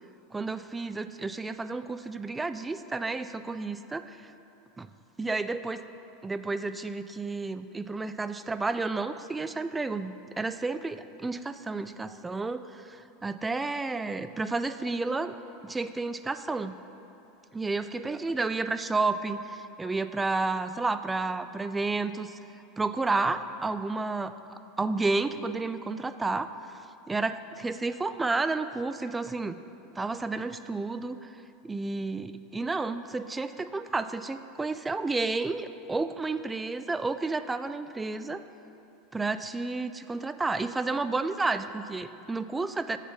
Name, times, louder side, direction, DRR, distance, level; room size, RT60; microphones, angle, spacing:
voice 1, 0.3-4.2 4.8-4.9 5.2-5.8 6.2-15.4 15.6-16.8 17.5-22.4 22.8-26.5 27.1-29.6 30.0-31.3 31.6-38.4 39.1-43.0, right 3 dB, 15° right, 12 dB, 0.3 m, -31 dB
8.0 x 4.1 x 5.9 m, 2.8 s
hypercardioid pair, 95°, 0 cm